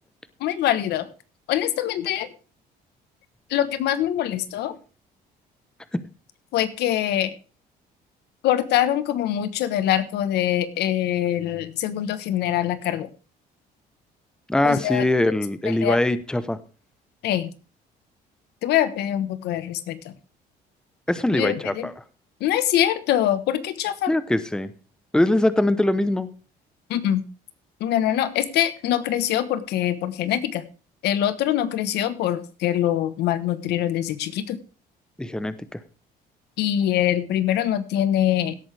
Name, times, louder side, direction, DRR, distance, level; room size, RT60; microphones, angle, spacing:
voice 1, 0.4-1.1 1.5-2.3 3.5-4.7 6.5-7.3 8.4-13.1 14.6-15.1 15.6-16.0 17.2-17.5 18.6-20.1 21.3-21.9 22.4-24.1 26.9-27.2 27.8-30.6 31.0-34.6 36.6-38.5, left 11 dB, 80° left, 13 dB, 1.2 m, -24 dB
voice 2, 14.5-16.6 21.1-21.9 24.1-24.7 25.1-26.3 35.2-35.8, left 1 dB, 5° left, 13 dB, 0.8 m, -22 dB
17.0 x 8.6 x 3.4 m, 0.37 s
cardioid pair, 110°, 17 cm